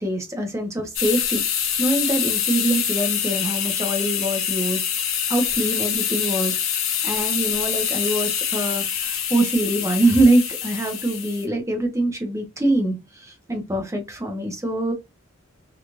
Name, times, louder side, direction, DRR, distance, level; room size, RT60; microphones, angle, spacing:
voice 1, 0.0-1.4 1.8-4.8 5.3-6.5 7.0-14.9, right 1 dB, 15° right, 0.8 m, -23 dB
sound 1, 1.0-11.5, left 8 dB, 80° left, 0.8 m, -25 dB
3.0 x 2.4 x 2.6 m
head